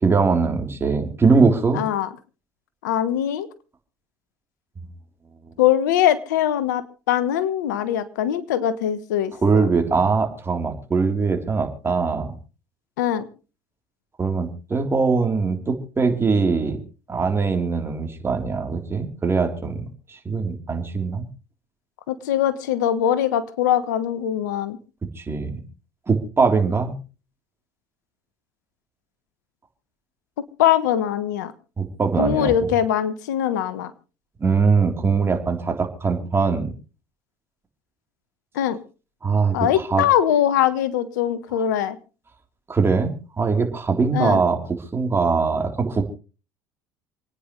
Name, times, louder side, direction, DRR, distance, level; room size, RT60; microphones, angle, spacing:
voice 1, 0.0-1.8 9.4-12.3 14.2-16.8 17.1-21.3 25.2-25.6 26.1-27.0 31.8-32.5 34.4-36.7 39.2-40.0 42.7-44.6 44.9-46.0, right 4 dB, 25° right, 4 dB, 3.6 m, -21 dB
voice 2, 1.7-2.1 2.8-3.5 5.6-9.7 13.0-13.3 22.1-24.8 30.6-31.5 32.2-33.9 38.5-38.8 39.5-42.0 44.1-44.4, left 10 dB, 85° left, 14 dB, 1.2 m, -22 dB
28.5 x 10.0 x 3.2 m, 0.35 s
hypercardioid pair, 75°, 10 cm